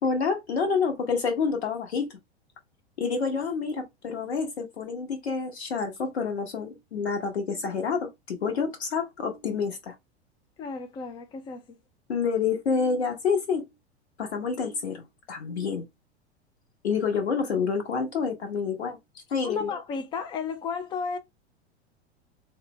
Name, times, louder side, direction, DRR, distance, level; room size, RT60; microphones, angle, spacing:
voice 1, 0.0-2.1 3.0-9.9 12.1-13.7 14.2-15.9 16.8-19.7, left 5 dB, 70° left, 1.0 m, -28 dB
voice 2, 10.6-11.6 19.4-21.2, left 5 dB, 15° left, 0.3 m, -33 dB
4.1 x 2.1 x 3.1 m
figure-of-eight pair, 90°, 34 cm